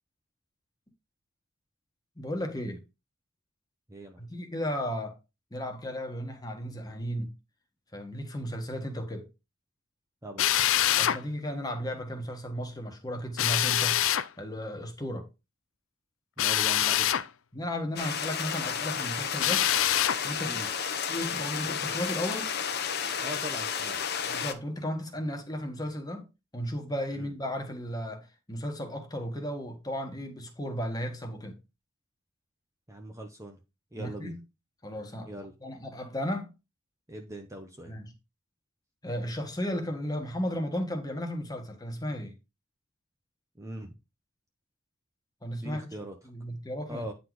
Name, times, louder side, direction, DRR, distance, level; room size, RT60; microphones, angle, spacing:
voice 1, 2.2-2.8 4.2-5.2 5.5-7.3 7.9-9.3 11.0-15.3 17.5-19.7 20.2-20.6 21.1-22.5 24.3-31.6 34.0-34.4 34.8-35.3 35.6-36.5 37.9-38.1 39.0-42.3 45.4-45.9 46.2-47.0, equal, 20° left, 1.4 m, -34 dB
voice 2, 3.9-4.3 10.2-10.5 16.4-17.1 20.4-20.7 23.2-24.0 27.2-27.3 32.9-33.6 33.9-34.4 35.2-35.5 37.1-37.9 43.6-43.9 45.5-46.1 46.9-47.1, right 1 dB, 15° right, 0.9 m, -41 dB
Drill, 10.4-11.2 13.4-14.3 16.4-17.3 19.4-20.2, left 12 dB, 65° left, 0.5 m, -25 dB
sound 1, 18.0-24.5, left 7 dB, 50° left, 0.9 m, -32 dB
9.5 x 4.1 x 4.7 m
head